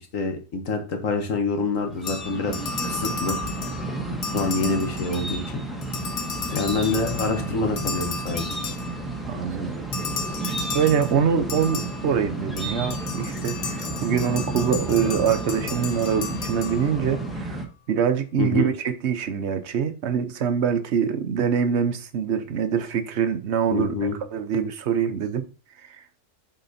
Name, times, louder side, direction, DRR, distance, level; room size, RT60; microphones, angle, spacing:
voice 1, 0.0-2.6 2.8-3.4 4.3-5.6 6.5-8.6 18.4-18.7 23.7-24.2, left 3 dB, 85° left, 5 dB, 1.8 m, -26 dB
sound 1, 1.8-17.7, right 2 dB, ahead, 1.1 m, -32 dB
sound 2, 2.0-5.5 5.8-9.3 9.9-17.2, left 4 dB, 65° left, 1.2 m, -34 dB
voice 2, 9.3-9.8 10.7-17.6 17.9-23.9 24.3-25.4, right 7 dB, 60° right, 10 dB, 1.1 m, -24 dB
7.8 x 4.3 x 4.2 m, 0.34 s
omnidirectional pair, 1.3 m